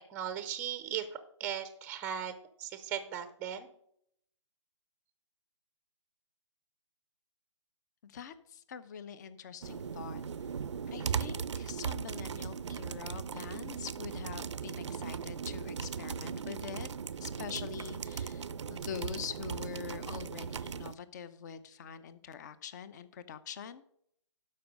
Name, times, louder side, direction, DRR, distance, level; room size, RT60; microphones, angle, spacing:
voice 1, 0.1-2.3 2.6-3.7, right 9 dB, 10° right, 11 dB, 0.7 m, -37 dB
voice 2, 8.0-10.2 10.9-16.9 17.2-23.8, left 8 dB, 35° left, 14 dB, 0.8 m, -44 dB
sound 1, 9.6-20.9, right 6 dB, 65° right, 0.6 m, -38 dB
12.0 x 5.4 x 5.3 m, 0.67 s
hypercardioid pair, 150°, 16 cm